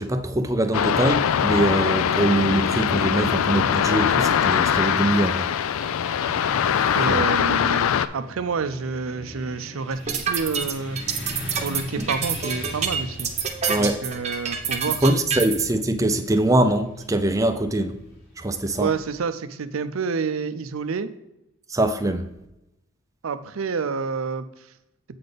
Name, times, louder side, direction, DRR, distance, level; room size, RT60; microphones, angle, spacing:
voice 1, 0.0-5.5 7.1-7.2 13.7-14.0 15.0-17.9 18.4-18.9 21.7-22.3, right 1 dB, 15° right, 0.5 m, -23 dB
sound 1, 0.7-8.1, left 8 dB, 90° left, 0.4 m, -22 dB
Motorcycle / Traffic noise roadway noise, 4.5-18.6, equal, 60° left, 2.1 m, -41 dB
voice 2, 6.9-11.0 11.5-13.3 13.8-15.1 18.8-21.1 23.2-24.7, right 5 dB, 85° right, 0.5 m, -28 dB
sound 2, 9.9-15.7, right 6 dB, 35° right, 0.9 m, -26 dB
7.7 x 4.1 x 5.1 m
head